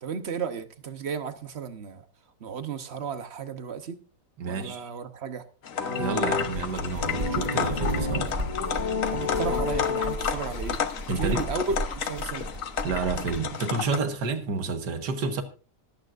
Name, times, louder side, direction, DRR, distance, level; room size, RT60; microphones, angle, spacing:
voice 1, 0.0-2.0 2.4-4.0 4.4-5.4 9.1-10.8 11.2-12.5, right 5 dB, 45° right, 1.0 m, -33 dB
voice 2, 4.4-4.9 5.9-8.3 11.1-11.4 12.8-15.4, right 4 dB, 85° right, 1.9 m, -30 dB
sound 1, 5.6-14.0, left 7 dB, 55° left, 1.3 m, -32 dB
sound 2, 5.7-10.7, left 4 dB, 75° left, 3.4 m, -31 dB
sound 3, 6.3-13.5, equal, 30° right, 1.9 m, -35 dB
25.0 x 8.8 x 2.5 m
omnidirectional pair, 1.8 m